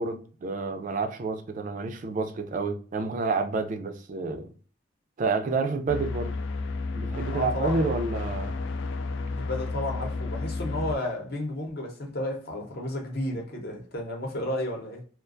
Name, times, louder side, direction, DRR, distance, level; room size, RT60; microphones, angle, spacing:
voice 1, 0.0-4.5 5.2-6.3 7.0-8.6, right 3 dB, 45° right, 0.3 m, -29 dB
voice 2, 5.7-6.0 7.3-8.0 9.3-15.0, left 1 dB, 60° left, 0.8 m, -33 dB
sound 1, 5.9-11.0, left 3 dB, 75° left, 0.3 m, -32 dB
2.3 x 2.2 x 2.4 m
head